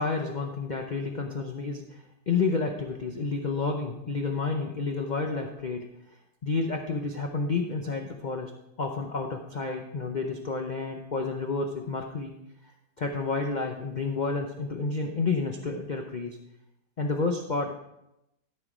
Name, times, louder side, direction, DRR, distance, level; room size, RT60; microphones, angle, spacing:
voice 1, 0.0-8.5 8.8-12.4 13.0-16.4 17.0-17.7, left 4 dB, 55° left, 3 dB, 0.5 m, -30 dB
13.0 x 5.3 x 4.9 m, 0.87 s
omnidirectional pair, 1.8 m